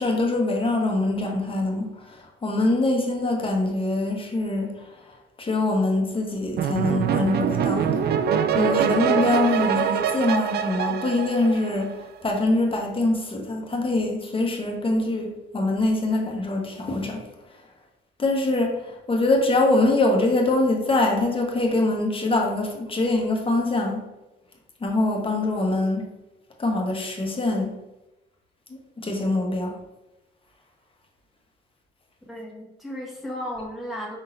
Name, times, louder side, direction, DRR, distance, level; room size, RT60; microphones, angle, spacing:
voice 1, 0.0-4.9 5.4-8.1 8.5-17.2 18.2-24.0 24.8-26.1 26.6-27.8 28.7-29.8, left 2 dB, 25° left, 1 dB, 1.1 m, -24 dB
sound 1, 6.6-12.0, right 8 dB, 55° right, 0.4 m, -24 dB
voice 2, 32.3-34.2, equal, ahead, -5 dB, 1.5 m, -34 dB
5.4 x 3.8 x 2.6 m, 0.99 s
cardioid pair, 90°, 20 cm